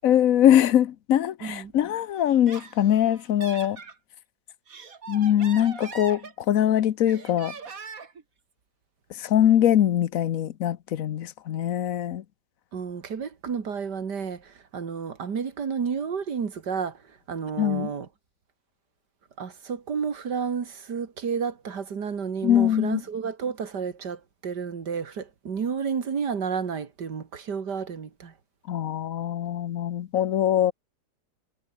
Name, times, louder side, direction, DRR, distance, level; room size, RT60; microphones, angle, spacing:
voice 1, 0.0-3.8 5.1-7.5 9.2-12.2 17.6-17.9 22.4-23.0 28.7-30.7, left 11 dB, 60° left, 1.1 m, -22 dB
voice 2, 1.4-1.7 12.7-18.1 19.4-28.3, right 6 dB, 70° right, 2.6 m, -31 dB
Laughter, 2.3-4.0 4.5-6.7 7.1-8.2, right 5 dB, 55° right, 2.5 m, -42 dB
omnidirectional pair, 1.9 m